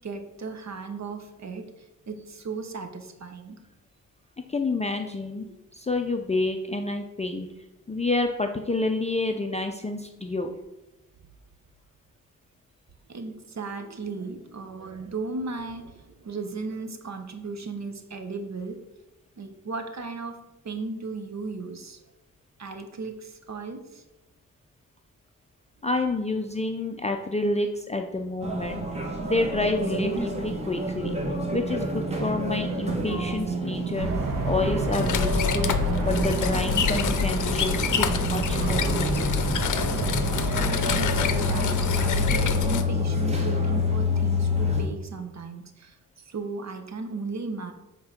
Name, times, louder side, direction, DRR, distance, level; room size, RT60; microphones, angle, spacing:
voice 1, 0.0-3.6 13.1-18.8 19.4-22.0 22.6-24.0 40.6-47.7, right 3 dB, 55° right, 7 dB, 0.8 m, -36 dB
voice 2, 4.5-5.4 5.7-7.5 7.9-10.5 25.8-28.8 29.2-31.2 31.5-34.1 34.4-35.7 36.0-39.0, left 2 dB, 20° left, 4 dB, 0.5 m, -28 dB
sound 1, 28.4-44.8, left 1 dB, 20° right, 1.5 m, -28 dB
sound 2, 34.0-42.5, right 2 dB, 90° right, 1.4 m, -30 dB
sound 3, 34.9-42.8, left 8 dB, 65° left, 0.6 m, -28 dB
7.7 x 3.8 x 5.8 m, 0.98 s
wide cardioid pair, 125°, 33 cm